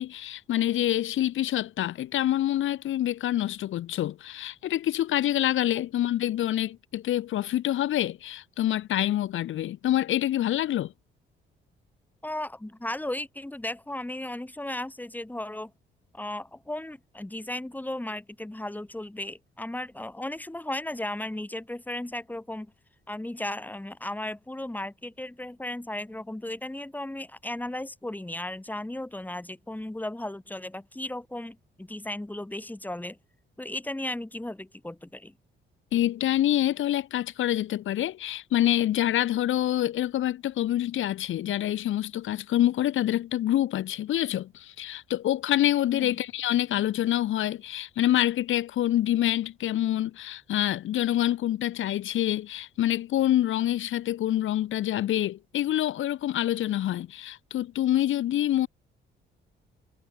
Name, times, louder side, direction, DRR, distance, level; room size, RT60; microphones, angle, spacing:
voice 1, 0.0-10.9 35.9-58.7, left 13 dB, 80° left, 7.9 m, -26 dB
voice 2, 12.2-15.7 16.1-22.7 23.1-33.2 33.6-35.3 45.9-46.1, left 1 dB, 10° left, 6.0 m, -35 dB
cardioid pair, 90°, 20 cm